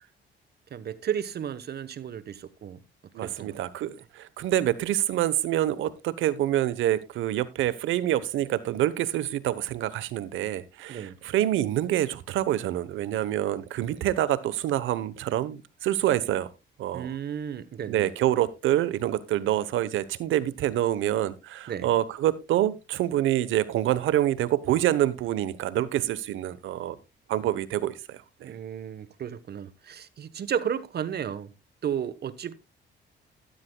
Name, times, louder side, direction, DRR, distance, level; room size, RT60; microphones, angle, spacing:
voice 1, 0.7-2.8 3.1-3.6 10.9-11.2 16.9-18.1 21.7-21.9 28.4-31.5 31.8-32.5, right 8 dB, 55° right, 1.1 m, -33 dB
voice 2, 3.1-16.5 16.8-17.2 17.9-27.0 27.3-28.5, right 12 dB, 85° right, 1.0 m, -26 dB
13.0 x 12.5 x 2.3 m
cardioid pair, 90°, 20 cm